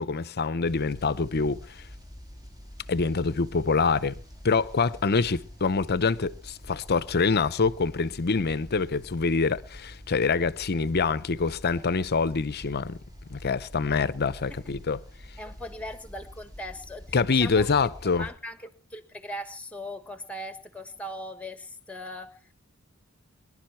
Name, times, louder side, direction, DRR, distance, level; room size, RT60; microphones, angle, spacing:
voice 1, 0.0-1.8 2.9-4.1 4.4-13.0 13.3-15.0 17.1-18.3, left 4 dB, 50° left, 0.7 m, -25 dB
sound 1, 0.6-18.3, equal, 20° right, 1.9 m, -46 dB
voice 2, 15.4-17.7 18.1-22.4, left 1 dB, 5° left, 1.5 m, -39 dB
24.0 x 11.5 x 4.4 m
head